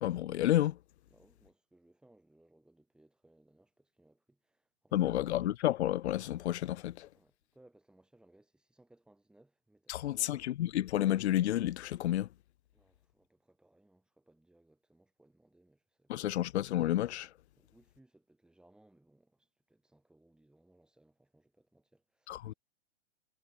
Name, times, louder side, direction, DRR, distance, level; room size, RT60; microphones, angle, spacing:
voice 1, 0.0-0.8 4.9-7.1 9.9-12.3 16.1-17.3 22.3-22.5, left 13 dB, 75° left, 0.6 m, -30 dB
voice 2, 1.1-5.4 7.1-10.4 12.7-16.4 17.6-22.5, right 1 dB, ahead, 2.9 m, -66 dB
hypercardioid pair, 150°, 34 cm